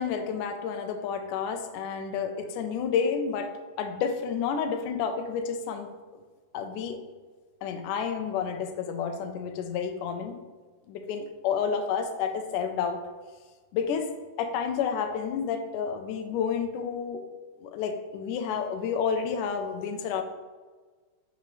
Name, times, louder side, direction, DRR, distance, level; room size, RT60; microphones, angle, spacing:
voice 1, 0.0-3.5 3.8-5.9 6.5-7.0 7.6-10.4 10.9-13.0 13.7-14.1 14.4-17.2 17.6-20.2, left 6 dB, 75° left, 5 dB, 2.1 m, -30 dB
12.5 x 4.7 x 3.2 m, 1.4 s
omnidirectional pair, 4.1 m